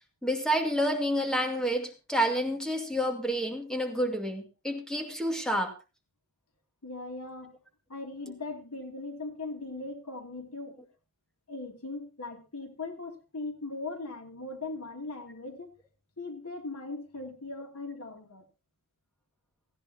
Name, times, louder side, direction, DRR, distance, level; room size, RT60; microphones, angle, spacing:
voice 1, 0.2-5.7, equal, 5° left, 2.2 m, -29 dB
voice 2, 6.8-7.6 7.9-10.8 11.5-15.7 16.2-18.5, left 3 dB, 90° left, 2.7 m, -39 dB
17.5 x 14.5 x 2.9 m
head